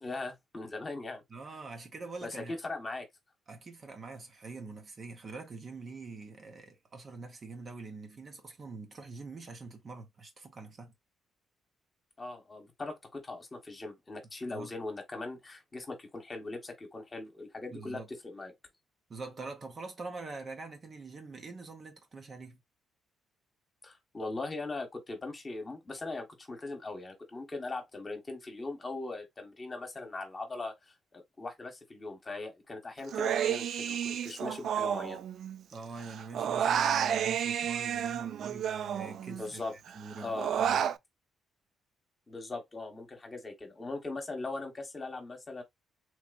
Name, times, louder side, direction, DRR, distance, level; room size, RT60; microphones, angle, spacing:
voice 1, 0.0-1.2 2.2-2.3 2.6-3.0 12.2-18.5 23.8-35.2 39.3-39.7 40.2-40.5 42.3-45.6, left 3 dB, 30° left, 1.3 m, -40 dB
voice 2, 1.3-2.5 3.5-10.9 14.5-14.7 17.7-18.1 19.1-22.6 35.7-39.6 39.9-40.9, right 3 dB, 40° right, 1.0 m, -44 dB
Human voice, 33.1-35.7 36.0-39.5 39.9-41.0, right 9 dB, 65° right, 0.3 m, -31 dB
3.1 x 2.9 x 2.5 m
cardioid pair, 90°, 0 cm